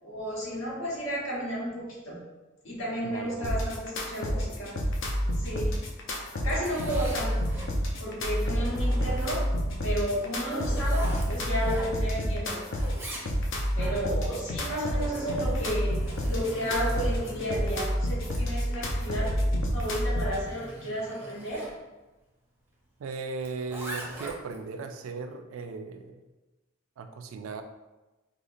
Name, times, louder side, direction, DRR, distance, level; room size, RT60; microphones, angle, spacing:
voice 1, 0.0-2.2 2.6-4.8 5.4-5.7 6.4-7.5 8.0-9.5 9.8-12.6 13.7-16.0 16.3-19.4 19.7-21.7, equal, 90° left, -6 dB, 1.3 m, -32 dB
voice 2, 3.0-3.6 23.0-26.2 27.0-27.6, right 4 dB, 80° right, 7 dB, 0.3 m, -37 dB
sound 1, 3.4-20.4, equal, 70° left, 0.5 m, -29 dB
Zipper (clothing), 6.3-7.7 8.3-9.6 10.1-12.3 12.6-13.7 14.6-21.8 23.4-24.6, right 1 dB, 10° right, 0.5 m, -43 dB
4.9 x 2.1 x 2.6 m, 1.1 s
head